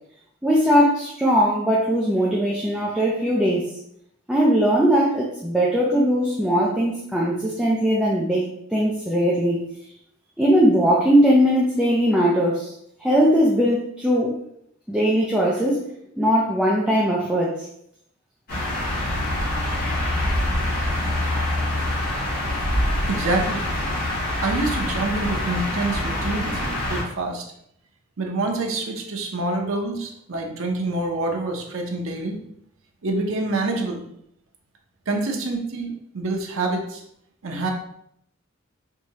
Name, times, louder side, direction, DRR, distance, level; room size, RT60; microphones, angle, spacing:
voice 1, 0.4-3.7 4.3-8.5 8.7-9.6 10.4-12.7 13.0-14.3 14.9-15.8 16.2-17.7, equal, 5° right, -5 dB, 0.5 m, -20 dB
sound 1, 18.5-27.0, left 1 dB, 45° left, 1.6 m, -25 dB
voice 2, 23.1-23.6 24.4-27.4 28.2-32.4 33.0-34.1 35.1-37.0 37.4-37.7, right 2 dB, 80° right, 1 dB, 0.7 m, -26 dB
4.7 x 2.7 x 2.9 m, 0.72 s
head